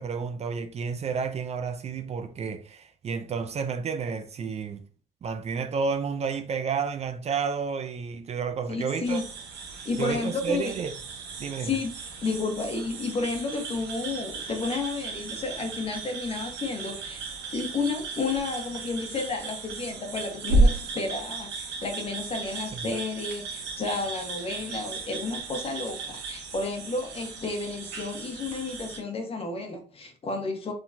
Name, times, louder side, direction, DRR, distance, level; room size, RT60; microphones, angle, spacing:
voice 1, 0.0-4.8 5.2-9.2 10.0-10.9 11.4-11.8 22.7-22.8, right 5 dB, 40° right, 0.5 m, -31 dB
voice 2, 8.7-9.3 9.8-10.7 11.6-11.9 12.2-17.2 17.5-30.7, left 3 dB, 35° left, 1.2 m, -31 dB
sound 1, 9.0-29.0, right 2 dB, 85° right, 1.3 m, -33 dB
4.8 x 3.7 x 2.7 m
cardioid pair, 110°, 17 cm